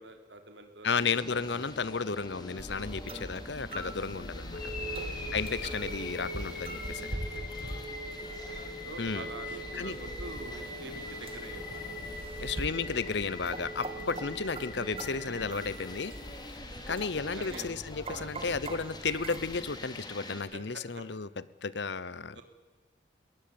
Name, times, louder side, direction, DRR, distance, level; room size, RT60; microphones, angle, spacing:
voice 1, 0.0-0.9 2.8-3.2 4.7-5.0 7.1-7.8 8.8-11.7 13.9-14.0 16.6-17.7 18.1-18.6 20.5-21.0 22.3-22.4, right 2 dB, 70° right, 6 dB, 3.6 m, -47 dB
voice 2, 0.8-4.6 5.3-7.1 9.0-9.3 9.7-10.0 12.4-16.1 16.9-21.3 21.6-22.4, left 5 dB, 65° left, 19 dB, 0.9 m, -33 dB
sound 1, 0.9-20.4, left 2 dB, 20° left, 2.9 m, -47 dB
sound 2, 2.6-19.8, right 1 dB, 30° right, 2.6 m, -43 dB
sound 3, 4.5-16.5, left 1 dB, 45° left, 5.0 m, -41 dB
21.0 x 19.0 x 8.8 m, 1.3 s
head